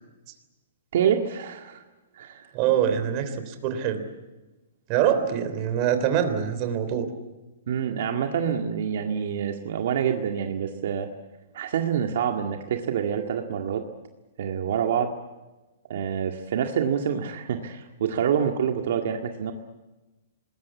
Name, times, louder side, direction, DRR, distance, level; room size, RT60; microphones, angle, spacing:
voice 1, 0.9-1.8 2.1-2.5 7.7-11.1 11.5-13.8 14.4-15.1 15.9-19.5, right 8 dB, 60° right, 3 dB, 1.9 m, -26 dB
voice 2, 2.5-4.0 4.9-7.1, right 9 dB, 30° right, 8 dB, 3.3 m, -24 dB
26.5 x 20.5 x 8.4 m, 1.1 s
hypercardioid pair, 165°, 0 cm